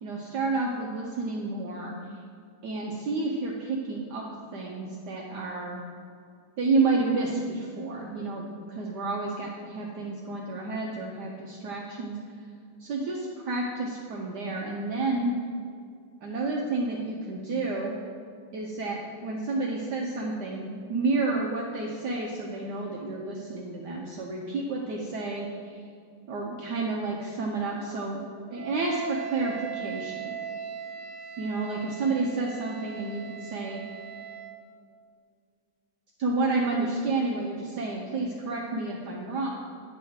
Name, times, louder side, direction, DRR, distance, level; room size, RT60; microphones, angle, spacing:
voice 1, 0.0-1.9 2.6-4.2 4.5-5.8 6.6-12.2 12.8-15.3 16.2-17.9 18.5-25.8 26.3-28.2 28.5-30.3 31.4-33.8 36.2-39.5, right 3 dB, 65° right, -2 dB, 1.1 m, -30 dB
Wind instrument woodwind instrument, 28.5-34.7, right 8 dB, 90° right, 1.5 m, -39 dB
9.8 x 3.5 x 6.2 m, 2.3 s
omnidirectional pair, 2.3 m